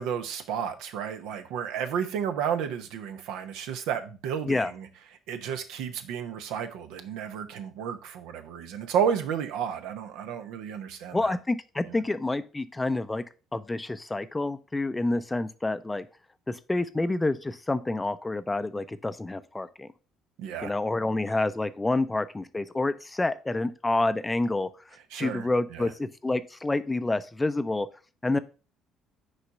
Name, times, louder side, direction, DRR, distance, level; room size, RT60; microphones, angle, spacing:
voice 1, 0.0-4.9 5.3-11.3 11.8-12.0 20.4-20.7 25.1-25.9, right 8 dB, 65° right, 0.9 m, -32 dB
voice 2, 11.1-13.2 13.5-16.1 16.5-19.9 20.6-24.7 25.2-27.9 28.2-28.4, left 2 dB, 15° left, 0.6 m, -28 dB
6.6 x 4.8 x 5.5 m
figure-of-eight pair, 50°, 0 cm